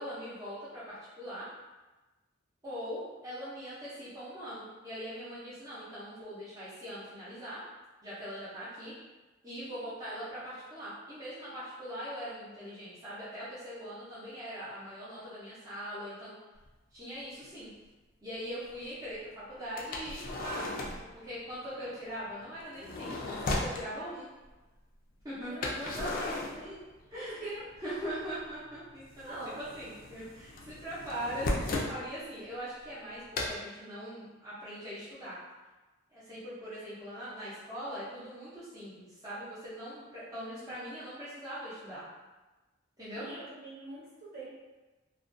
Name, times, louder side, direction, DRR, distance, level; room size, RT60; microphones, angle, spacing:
voice 1, 0.0-1.5 2.6-7.6 8.0-8.9 9.4-16.3 16.9-17.7 18.2-20.7 21.1-24.3 25.2-26.8 27.1-27.4 27.8-35.4 36.1-42.0 43.0-43.2, equal, 15° right, -13 dB, 0.6 m, -41 dB
sound 1, 16.7-16.8 17.4-17.5 19.8-21.1 22.6-23.8 25.6-27.3 27.5-28.4 28.7-32.0 33.3-33.5, left 2 dB, 45° left, 0.3 m, -36 dB
voice 2, 25.4-26.1 27.4-27.6 29.2-29.6 40.3-40.7 43.2-44.5, right 2 dB, 45° right, -8 dB, 0.9 m, -44 dB
2.4 x 2.1 x 2.5 m, 1.2 s
head